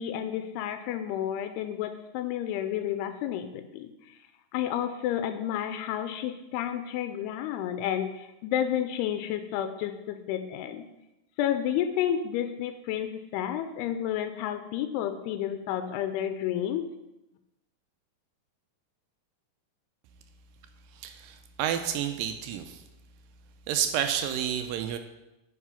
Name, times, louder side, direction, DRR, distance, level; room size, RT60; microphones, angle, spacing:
voice 1, 0.0-4.2 4.5-10.9 11.4-16.9, left 10 dB, 85° left, 9 dB, 2.6 m, -31 dB
voice 2, 21.0-22.8 23.7-25.0, right 9 dB, 85° right, 7 dB, 2.1 m, -30 dB
9.4 x 5.7 x 5.7 m, 0.97 s
omnidirectional pair, 4.5 m